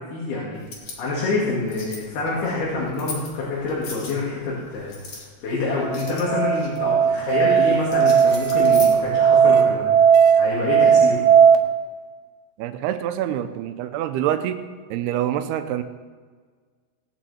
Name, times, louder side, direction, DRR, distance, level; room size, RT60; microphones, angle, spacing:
voice 1, 0.1-0.6 1.0-11.2, left 3 dB, 80° left, -6 dB, 4.2 m, -27 dB
sound 1, 0.5-9.5, left 3 dB, 45° left, 2.7 m, -41 dB
Musical instrument, 5.9-11.6, right 7 dB, 70° right, 2.4 m, -16 dB
voice 2, 12.6-14.6 14.9-15.8, right 11 dB, 90° right, 9 dB, 2.7 m, -26 dB
18.0 x 9.1 x 4.3 m, 1.5 s
omnidirectional pair, 4.5 m